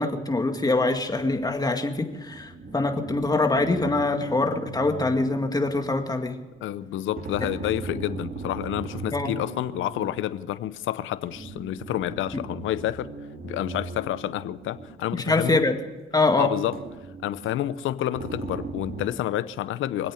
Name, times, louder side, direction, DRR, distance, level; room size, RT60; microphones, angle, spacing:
voice 1, 0.0-6.4 9.1-9.3 15.3-15.7 16.1-16.5, left 2 dB, 20° left, 2.1 m, -24 dB
sound 1, 1.2-1.4 2.1-6.0 7.1-10.2 11.2-15.2 15.6-15.7 16.7-17.6 18.1-19.1, right 3 dB, 45° right, 2.5 m, -38 dB
voice 2, 6.6-13.1 13.4-15.7 16.4-16.8 17.2-20.1, left 13 dB, 80° left, 0.8 m, -29 dB
24.5 x 8.6 x 6.5 m
cardioid pair, 90°, 20 cm